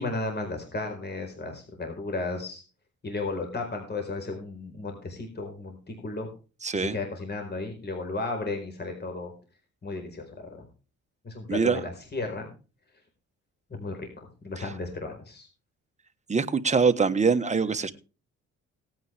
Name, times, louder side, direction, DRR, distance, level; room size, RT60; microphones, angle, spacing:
voice 1, 0.0-2.6 3.0-6.3 6.7-9.3 9.8-10.7 11.2-12.5 13.7-15.5, left 3 dB, 35° left, 3 dB, 4.5 m, -34 dB
voice 2, 6.6-7.0 11.5-11.8 14.6-14.7 16.3-17.9, right 5 dB, 25° right, 9 dB, 1.3 m, -24 dB
18.0 x 9.4 x 3.5 m, 0.34 s
cardioid pair, 90°, 30 cm